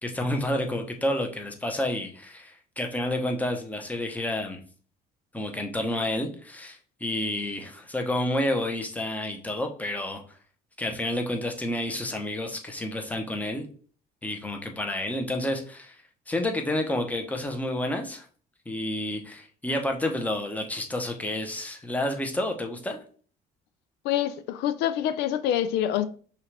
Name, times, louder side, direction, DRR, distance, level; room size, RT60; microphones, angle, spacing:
voice 1, 0.0-4.6 5.3-10.2 10.8-13.7 14.2-16.0 16.3-18.3 18.7-23.0, left 1 dB, 10° left, 0.9 m, -30 dB
voice 2, 24.0-26.1, left 11 dB, 85° left, 0.4 m, -26 dB
5.6 x 2.5 x 3.3 m
cardioid pair, 110°, 17 cm